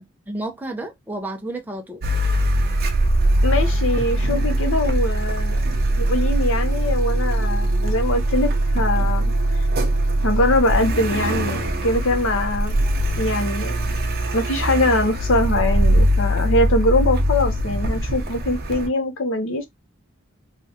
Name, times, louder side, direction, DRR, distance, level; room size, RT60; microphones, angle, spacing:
voice 1, 0.0-2.0, right 2 dB, 10° right, 0.5 m, -31 dB
Car, 2.0-18.9, right 1 dB, 50° right, 0.7 m, -21 dB
voice 2, 3.4-5.6 6.0-9.3 10.2-12.8 13.2-13.8 14.3-19.7, left 2 dB, 65° left, 0.8 m, -22 dB
3.3 x 2.3 x 2.7 m
head